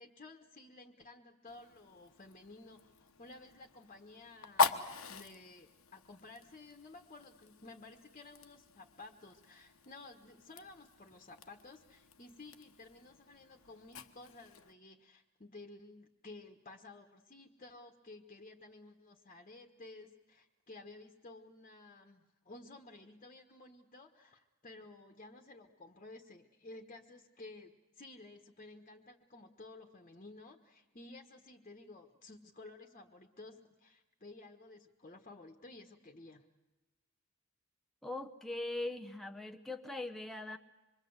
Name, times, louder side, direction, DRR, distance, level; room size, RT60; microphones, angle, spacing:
voice 1, 0.0-36.4, left 2 dB, 35° left, 3 dB, 1.4 m, -54 dB
Fire, 1.5-14.7, left 5 dB, 85° left, 1.3 m, -41 dB
voice 2, 38.0-40.6, left 2 dB, ahead, 3 dB, 0.8 m, -41 dB
26.0 x 22.5 x 8.0 m, 1.1 s
head